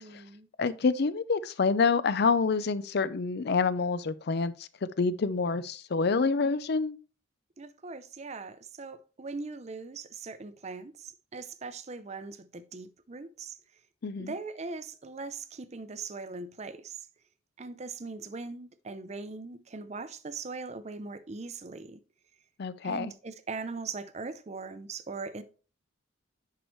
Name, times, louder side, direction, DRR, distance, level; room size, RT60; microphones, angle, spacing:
voice 1, 0.0-0.5 7.6-13.6 14.2-17.1 17.6-22.0 22.8-25.4, right 4 dB, 35° right, 0.6 m, -40 dB
voice 2, 0.6-4.7 5.0-7.0 14.0-14.3 22.6-23.1, left 4 dB, 55° left, 0.5 m, -27 dB
10.5 x 4.7 x 3.1 m
head